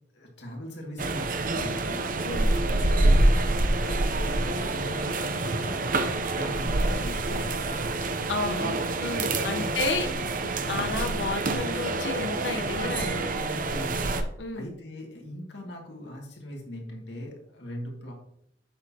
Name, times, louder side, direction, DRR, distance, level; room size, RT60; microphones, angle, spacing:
voice 1, 0.1-2.1 2.5-5.8 6.3-7.6 9.3-9.9 10.5-10.9 13.3-18.1, equal, 70° left, 0 dB, 2.2 m, -40 dB
sound 1, 1.0-14.2, right 2 dB, 50° right, 0.7 m, -26 dB
voice 2, 8.3-8.7 9.0-10.1 10.4-13.3 14.4-14.7, left 3 dB, 85° left, 6 dB, 0.9 m, -31 dB
8.5 x 6.4 x 2.9 m, 0.71 s
head